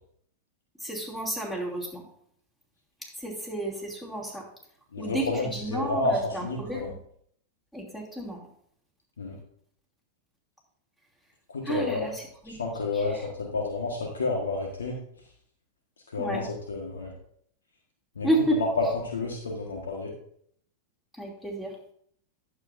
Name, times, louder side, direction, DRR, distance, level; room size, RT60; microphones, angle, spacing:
voice 1, 0.8-2.0 3.2-4.4 5.0-7.0 7.7-8.5 11.6-12.5 12.9-13.3 16.2-16.4 18.2-18.6 21.1-21.7, right 1 dB, 5° left, -2 dB, 2.9 m, -31 dB
voice 2, 4.9-6.9 9.2-9.4 11.5-12.1 12.5-15.0 16.1-17.1 18.1-20.1, left 3 dB, 85° left, 0 dB, 1.5 m, -30 dB
11.0 x 7.4 x 2.7 m, 0.66 s
hypercardioid pair, 100°, 0 cm